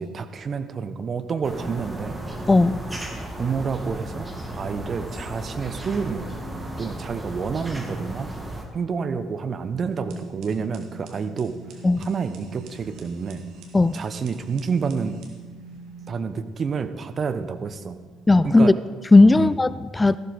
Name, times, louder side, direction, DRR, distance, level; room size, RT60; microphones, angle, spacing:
voice 1, 0.0-2.2 3.4-4.3 4.6-6.3 6.8-8.3 8.7-11.5 12.0-13.4 13.9-15.2 16.1-18.0 18.4-18.8 19.4-19.6, right 5 dB, 40° right, 10 dB, 0.8 m, -29 dB
sound 1, 1.4-8.7, right 1 dB, 15° right, 1.8 m, -34 dB
voice 2, 2.5-2.8 11.8-12.0 13.7-14.0 18.3-18.7 19.1-20.2, left 2 dB, 20° left, 17 dB, 0.3 m, -16 dB
sound 2, 9.9-16.2, right 4 dB, 60° right, 1.6 m, -44 dB
13.5 x 12.0 x 4.0 m, 1.3 s
figure-of-eight pair, 50°, 0 cm